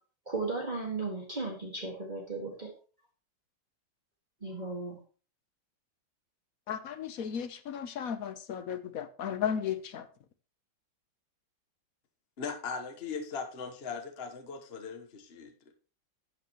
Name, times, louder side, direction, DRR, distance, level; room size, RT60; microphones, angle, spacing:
voice 1, 0.3-2.7 4.4-5.0, right 3 dB, 25° right, 1.8 m, -35 dB
voice 2, 6.7-10.1, left 8 dB, 60° left, 1.1 m, -35 dB
voice 3, 12.4-15.7, left 5 dB, 40° left, 1.1 m, -39 dB
12.0 x 8.1 x 3.0 m
omnidirectional pair, 2.0 m